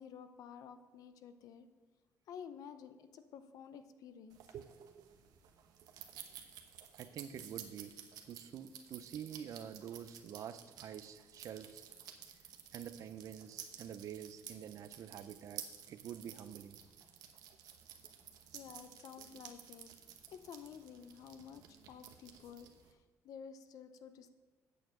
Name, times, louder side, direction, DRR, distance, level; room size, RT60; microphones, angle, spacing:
voice 1, 0.0-1.7 2.3-4.4 18.5-19.9 20.3-24.3, left 7 dB, 70° left, 11 dB, 0.7 m, -52 dB
sound 1, 4.3-22.9, right 9 dB, 85° right, 1.0 m, -53 dB
voice 2, 4.5-5.1 7.0-8.0 8.3-11.8 12.7-16.8, right 9 dB, 60° right, 12 dB, 0.5 m, -47 dB
8.5 x 6.7 x 6.4 m, 1.3 s
cardioid pair, 135°, 6 cm